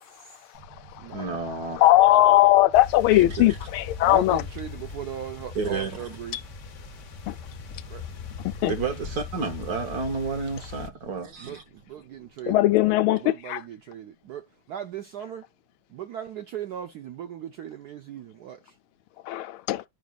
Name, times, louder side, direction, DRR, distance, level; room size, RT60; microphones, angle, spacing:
voice 1, 0.2-0.6 1.0-1.4 4.0-6.4 7.9-8.0 11.4-11.6 11.9-12.9 13.2-15.5 15.9-18.7, right 10 dB, 70° right, 0.9 m, -38 dB
sound 1, 0.5-13.8, right 3 dB, 85° right, 2.3 m, -51 dB
voice 2, 1.1-1.8 3.4-3.5 5.5-6.1 8.6-11.6, right 4 dB, 55° right, 1.4 m, -30 dB
voice 3, 1.8-4.4 7.3-7.4 8.4-8.7 12.5-13.6 19.3-19.8, left 15 dB, 90° left, 1.5 m, -19 dB
sound 2, 2.7-10.9, left 6 dB, 55° left, 0.9 m, -39 dB
12.5 x 5.1 x 2.3 m
omnidirectional pair, 2.3 m